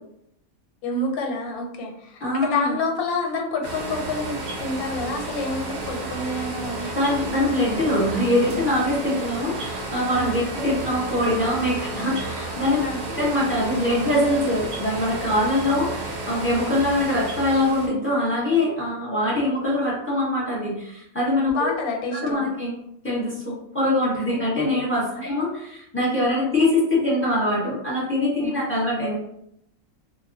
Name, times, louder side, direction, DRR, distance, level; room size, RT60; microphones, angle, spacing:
voice 1, 0.8-7.0 10.1-10.5 12.8-13.0 21.5-22.5 25.1-25.2 28.4-28.6, left 2 dB, 90° left, 1 dB, 1.1 m, -28 dB
voice 2, 2.2-2.7 6.9-12.8 13.2-21.7 22.1-22.7 23.0-29.1, left 1 dB, 10° left, -8 dB, 0.8 m, -23 dB
sound 1, 3.6-17.9, right 2 dB, 80° right, 0.4 m, -32 dB
2.2 x 2.2 x 2.6 m, 0.76 s
omnidirectional pair, 1.5 m